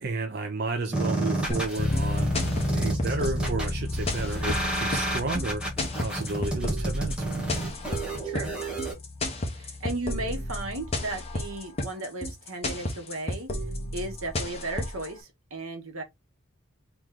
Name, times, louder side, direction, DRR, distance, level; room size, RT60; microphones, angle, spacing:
voice 1, 0.0-5.6 6.0-7.5, right 3 dB, 45° right, 0.5 m, -32 dB
sound 1, 0.9-8.9, right 2 dB, 5° right, 1.0 m, -31 dB
sound 2, 1.5-15.1, left 1 dB, 30° left, 0.9 m, -32 dB
Bass guitar, 1.8-11.6, left 2 dB, 45° left, 0.5 m, -35 dB
voice 2, 9.6-13.5 13.9-16.0, right 2 dB, 80° right, 1.2 m, -35 dB
3.1 x 3.1 x 3.7 m
head